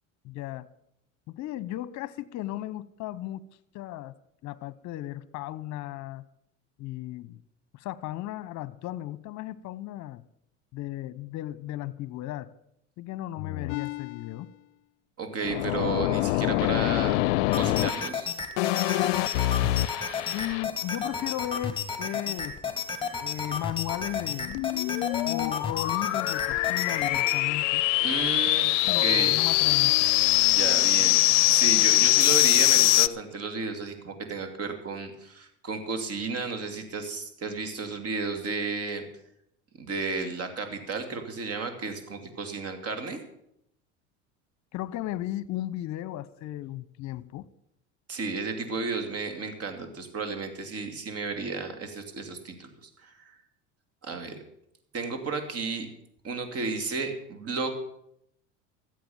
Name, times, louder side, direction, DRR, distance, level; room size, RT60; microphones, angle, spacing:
voice 1, 0.2-0.7 1.3-3.4 3.7-4.1 4.4-6.2 6.8-7.4 7.7-10.2 10.7-12.5 13.0-14.5 20.3-22.6 23.2-24.6 25.3-27.8 28.8-30.1 44.7-47.5, left 14 dB, 50° left, 0.9 m, -35 dB
sound 1, 13.4-14.3 15.4-18.1 18.6-20.6 24.2-33.1, left 19 dB, 80° left, 0.5 m, -24 dB
voice 2, 15.2-17.2 17.5-18.3 28.0-28.7 29.0-29.3 30.5-39.0 39.8-43.2 48.1-52.7 53.0-53.4 54.0-54.4 54.9-55.9 56.2-57.8, right 4 dB, 40° right, 2.7 m, -33 dB
sound 2, 17.5-27.4, left 5 dB, 15° left, 2.0 m, -33 dB
14.5 x 7.9 x 7.1 m
hypercardioid pair, 90°, 36 cm